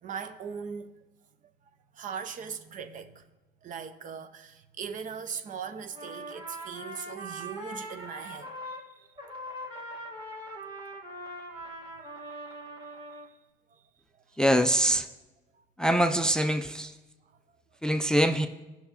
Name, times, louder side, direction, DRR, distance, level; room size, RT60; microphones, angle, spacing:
voice 1, 0.0-1.1 1.9-3.2 3.6-9.1 11.9-12.0 12.2-12.3 13.7-13.8, right 7 dB, 50° right, 0.6 m, -40 dB
Trumpet, 5.9-8.9 9.2-13.3, right 1 dB, 25° right, 1.5 m, -41 dB
voice 2, 14.4-15.1 15.8-16.9 17.8-18.5, right 1 dB, 5° left, 0.4 m, -24 dB
15.0 x 5.8 x 2.8 m
cardioid pair, 110°, 17 cm